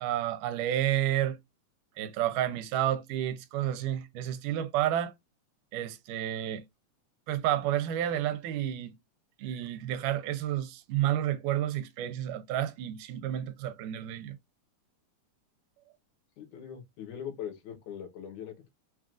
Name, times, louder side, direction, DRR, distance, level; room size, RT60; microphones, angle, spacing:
voice 1, 0.0-1.4 2.0-5.1 5.7-6.6 7.3-8.9 9.4-14.4, right 12 dB, 90° right, 2.2 m, -30 dB
voice 2, 16.4-18.7, left 9 dB, 70° left, 2.4 m, -41 dB
6.0 x 2.4 x 2.4 m
omnidirectional pair, 3.7 m